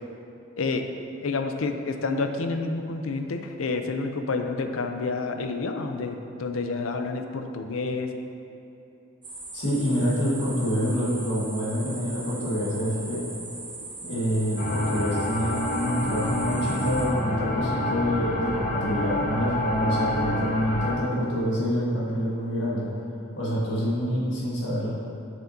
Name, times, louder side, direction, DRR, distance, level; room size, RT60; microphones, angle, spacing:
voice 1, 1.2-8.1, left 3 dB, 90° left, 6 dB, 0.5 m, -29 dB
sound 1, 9.2-17.1, right 3 dB, 20° right, 0.9 m, -40 dB
voice 2, 9.5-13.2 14.0-22.9 23.4-24.9, equal, 65° left, -7 dB, 1.6 m, -26 dB
sound 2, 14.6-20.9, left 1 dB, 40° left, 0.7 m, -28 dB
7.9 x 7.1 x 2.7 m, 2.8 s
head